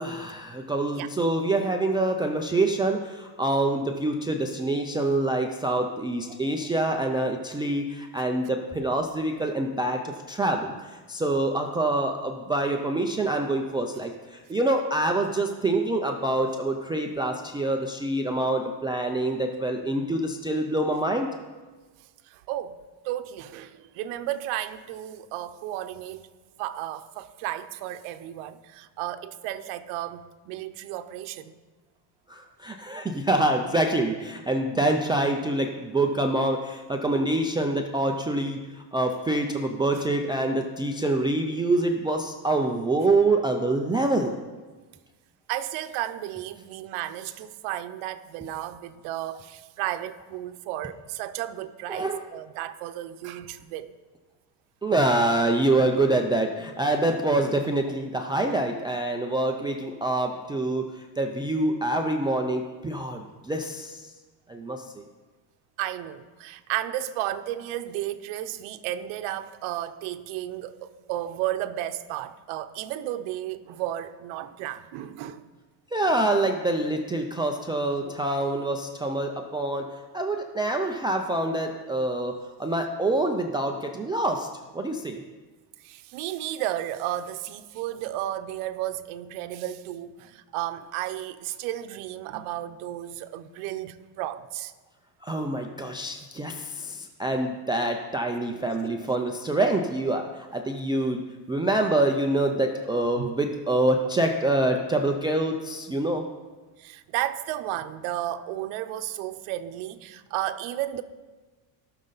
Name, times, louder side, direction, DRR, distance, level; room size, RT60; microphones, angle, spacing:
voice 1, 0.0-10.7 11.1-21.3 32.3-44.4 51.9-52.2 54.8-60.9 61.2-64.1 64.5-64.8 75.9-82.3 82.6-84.5 84.7-85.2 95.2-101.2 101.5-106.2, right 2 dB, 10° right, 0.3 m, -26 dB
voice 2, 22.3-22.8 23.0-26.3 26.6-31.5 45.5-53.9 65.8-75.5 85.8-94.7 97.3-97.4 103.2-103.3 106.8-111.0, right 13 dB, 80° right, 0.8 m, -33 dB
17.5 x 6.4 x 4.0 m
cardioid pair, 145°, 48 cm